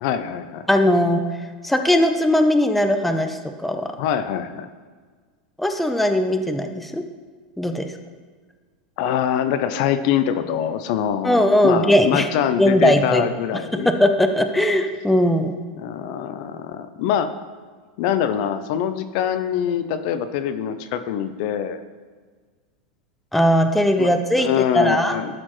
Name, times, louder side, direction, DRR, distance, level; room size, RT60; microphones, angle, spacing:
voice 1, 0.0-0.7 4.0-4.7 9.0-13.9 15.8-17.3 18.0-21.8 24.0-24.1 24.4-25.3, left 9 dB, 60° left, 10 dB, 0.4 m, -24 dB
voice 2, 0.7-1.2 1.6-3.9 5.6-7.0 7.6-7.9 11.2-12.3 12.6-13.2 13.8-15.5 23.3-25.2, left 1 dB, 5° left, 6 dB, 0.5 m, -19 dB
12.0 x 4.3 x 3.0 m, 1.5 s
supercardioid pair, 125°, 4 cm